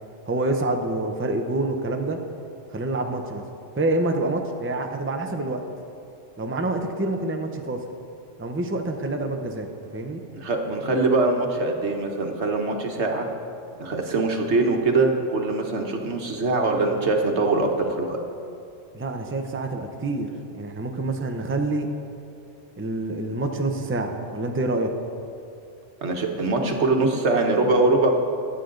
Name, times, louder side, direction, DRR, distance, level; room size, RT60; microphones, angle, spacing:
voice 1, 0.3-2.2 2.7-3.4 3.8-5.6 6.4-7.8 8.4-10.2 18.9-21.9 22.8-24.9, right 2 dB, 10° right, 4 dB, 0.7 m, -27 dB
voice 2, 10.3-13.3 13.8-18.2 26.0-28.1, right 3 dB, 65° right, 3 dB, 1.5 m, -22 dB
24.0 x 8.4 x 3.9 m, 2.5 s
omnidirectional pair, 1.2 m